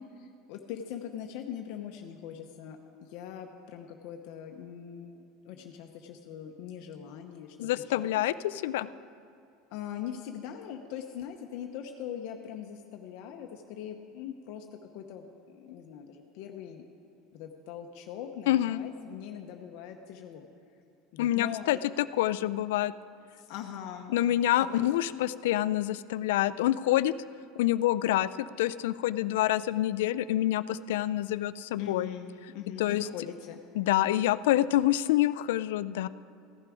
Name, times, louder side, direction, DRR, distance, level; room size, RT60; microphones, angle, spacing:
voice 1, 0.2-8.1 9.7-14.7 14.9-16.9 17.3-20.5 21.1-21.8 23.4-24.1 24.6-24.7 31.8-33.6, left 9 dB, 60° left, 4 dB, 0.8 m, -41 dB
voice 2, 7.6-8.9 18.5-18.8 21.2-21.8 22.2-22.9 24.1-27.1 27.6-32.1 32.8-33.0 33.8-36.1, left 14 dB, 90° left, 15 dB, 0.3 m, -27 dB
15.0 x 11.5 x 4.9 m, 2.5 s
supercardioid pair, 160°, 0 cm